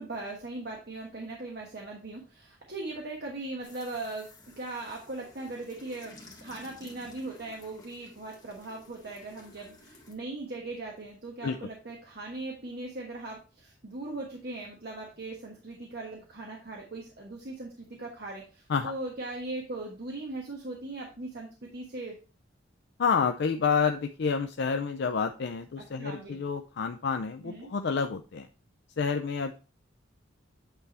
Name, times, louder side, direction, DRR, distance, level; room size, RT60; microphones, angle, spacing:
voice 1, 0.0-4.3 4.6-6.1 6.4-22.2 26.0-26.4 27.4-27.7, right 2 dB, 55° right, -1 dB, 1.3 m, -39 dB
sound 1, 3.6-10.1, left 2 dB, 20° left, 1.6 m, -53 dB
voice 2, 23.0-28.5 29.0-29.5, left 5 dB, 60° left, 6 dB, 0.4 m, -29 dB
8.7 x 3.5 x 4.1 m, 0.33 s
head